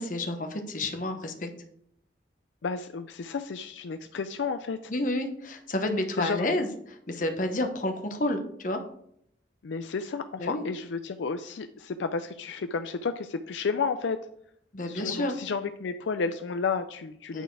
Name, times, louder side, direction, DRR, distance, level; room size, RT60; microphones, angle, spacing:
voice 1, 0.0-1.5 4.9-8.8 10.4-10.6 14.7-15.4 17.3-17.4, left 1 dB, 45° left, 5 dB, 1.0 m, -30 dB
voice 2, 2.6-4.8 6.2-6.5 9.6-14.2 14.9-17.4, left 5 dB, 80° left, 9 dB, 0.4 m, -32 dB
9.0 x 4.2 x 4.7 m, 0.70 s
head